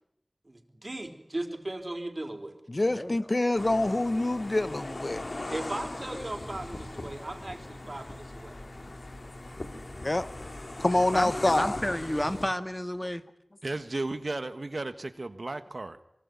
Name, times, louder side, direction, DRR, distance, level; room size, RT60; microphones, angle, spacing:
voice 1, 0.5-2.6 5.5-8.6, right 1 dB, 50° right, 4.6 m, -37 dB
voice 2, 2.7-5.2 10.0-10.3 10.8-11.8, left 2 dB, 50° left, 1.2 m, -26 dB
sound 1, 3.6-12.5, left 2 dB, 65° left, 2.8 m, -39 dB
voice 3, 11.1-13.2, equal, 15° left, 1.8 m, -31 dB
voice 4, 13.6-16.0, right 2 dB, 70° right, 1.5 m, -34 dB
24.5 x 23.5 x 9.7 m
wide cardioid pair, 40°, 0 cm